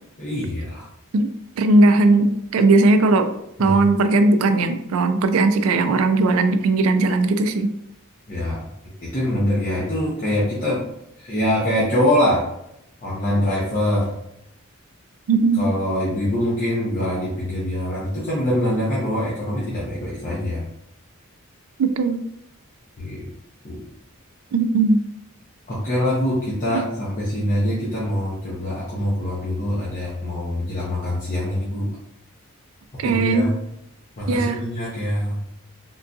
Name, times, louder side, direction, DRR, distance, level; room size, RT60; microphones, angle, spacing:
voice 1, 0.2-0.9 3.6-3.8 8.3-8.6 9.0-10.8 11.2-12.5 13.0-14.1 15.5-20.6 23.0-23.3 23.6-23.8 25.7-31.9 33.0-33.5 34.2-35.4, left 1 dB, 35° left, -6 dB, 0.7 m, -24 dB
voice 2, 1.6-3.3 3.6-7.7 15.3-15.7 21.8-22.2 24.5-25.0 26.7-26.8 33.0-33.5 34.3-34.6, right 3 dB, 70° right, 9 dB, 0.3 m, -18 dB
3.7 x 2.6 x 2.2 m, 0.80 s
head